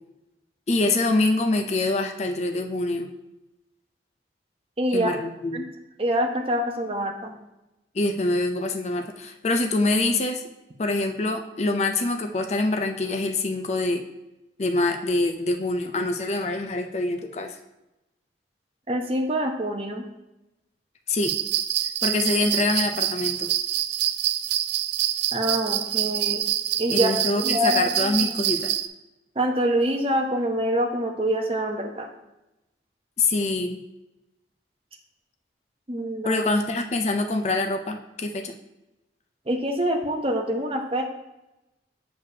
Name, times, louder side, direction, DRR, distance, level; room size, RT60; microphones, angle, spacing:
voice 1, 0.7-3.1 4.9-5.7 7.9-10.4 10.8-14.0 14.6-17.6 21.1-21.3 22.0-23.5 26.9-28.7 33.2-33.8 36.2-38.5, left 2 dB, 35° left, 4 dB, 0.5 m, -25 dB
voice 2, 4.8-5.2 5.5-5.6 6.0-7.3 18.9-20.1 25.3-26.4 26.8-28.4 29.4-32.1 35.9-36.4 39.5-41.0, equal, 30° right, 2 dB, 0.8 m, -25 dB
sound 1, 21.2-28.9, right 12 dB, 70° right, 0.4 m, -26 dB
6.7 x 6.6 x 2.8 m, 0.95 s
head